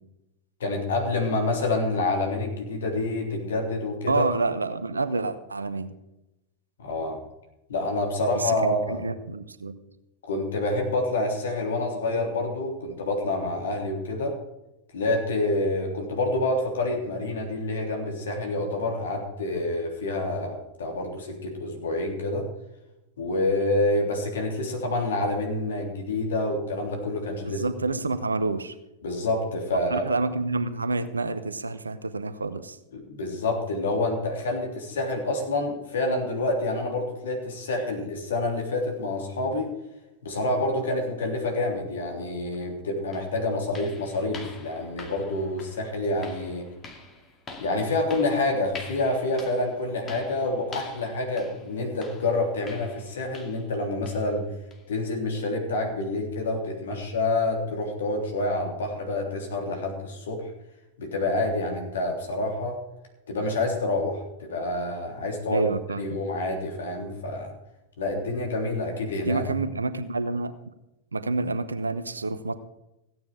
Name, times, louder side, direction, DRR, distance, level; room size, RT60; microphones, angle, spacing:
voice 1, 0.6-4.2 6.8-7.2 7.7-9.1 10.3-14.4 14.9-22.5 23.2-27.6 29.0-30.1 32.9-39.7 40.2-46.6 47.6-54.5 54.9-60.5 61.0-62.8 63.3-65.6 65.9-67.5 68.0-69.4, left 2 dB, 65° left, 2 dB, 3.4 m, -27 dB
voice 2, 4.1-5.9 8.3-9.8 27.5-28.7 29.9-32.8 65.5-66.2 69.3-70.5 71.1-72.5, right 3 dB, 75° right, 12 dB, 0.9 m, -28 dB
sound 1, 42.5-42.6 43.1-53.8 54.1-54.3 54.7-54.9 55.4-55.5 56.0-56.1, left 3 dB, 25° left, 2.2 m, -45 dB
16.0 x 9.4 x 4.9 m, 0.94 s
figure-of-eight pair, 90°, 0 cm